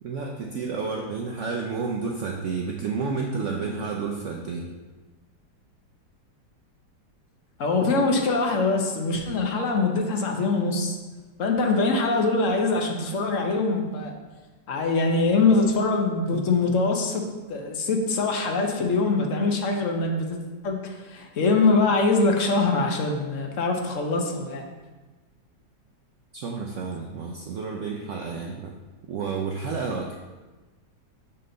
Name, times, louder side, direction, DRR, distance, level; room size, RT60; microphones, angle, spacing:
voice 1, 0.0-4.7 26.3-28.7 29.1-30.2, right 4 dB, 75° right, 1 dB, 0.7 m, -30 dB
voice 2, 7.6-10.9 11.4-14.1 14.7-17.2 17.5-20.4 20.6-24.6, left 3 dB, 55° left, 2 dB, 1.1 m, -23 dB
6.7 x 4.3 x 3.8 m, 1.2 s
omnidirectional pair, 1.8 m